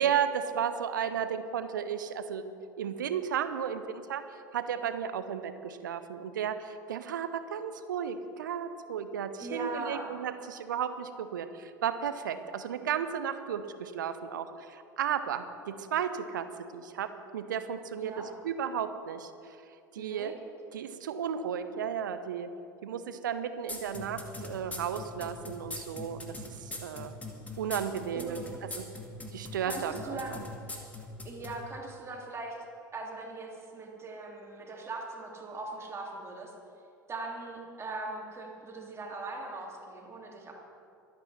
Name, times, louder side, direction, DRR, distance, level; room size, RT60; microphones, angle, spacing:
voice 1, 0.0-2.4 2.8-4.2 4.5-16.5 16.7-19.3 19.9-20.3 20.7-22.5 22.8-27.1 27.6-28.4 29.3-30.4, right 8 dB, 70° right, 11 dB, 0.8 m, -34 dB
voice 2, 9.4-10.1 18.0-18.3 20.0-20.3 28.1-28.4 29.6-30.5 31.2-32.6 32.9-36.5 37.1-40.5, right 3 dB, 25° right, -1 dB, 3.1 m, -40 dB
sound 1, 23.7-31.6, left 3 dB, 15° left, 2.2 m, -40 dB
24.0 x 8.8 x 4.3 m, 2.5 s
figure-of-eight pair, 70°, 11 cm